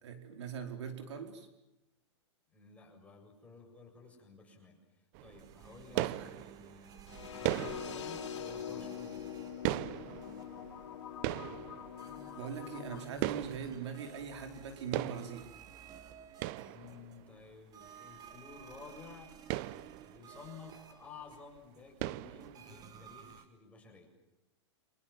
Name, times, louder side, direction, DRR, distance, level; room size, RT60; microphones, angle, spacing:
voice 1, 0.0-1.5 5.9-6.3 12.3-15.5, right 6 dB, 75° right, 5 dB, 4.9 m, -41 dB
voice 2, 2.5-4.8 5.2-7.0 7.4-9.3 16.6-19.4 20.0-24.1, left 4 dB, 10° left, 0 dB, 7.5 m, -53 dB
sound 1, 5.1-14.7 14.9-17.4 17.9-18.0 18.3-18.4 18.6-18.8 19.2-21.0 21.3-21.6 22.0-23.0, right 16 dB, 45° right, 0.9 m, -39 dB
sound 2, 5.4-9.9 10.2-10.8 12.0-17.3 17.7-21.8 22.4-23.5, right 6 dB, 25° right, 2.3 m, -55 dB
sound 3, 7.1-13.0, left 8 dB, 75° left, 3.7 m, -43 dB
28.5 x 26.5 x 7.7 m, 0.92 s
hypercardioid pair, 135°, 15 cm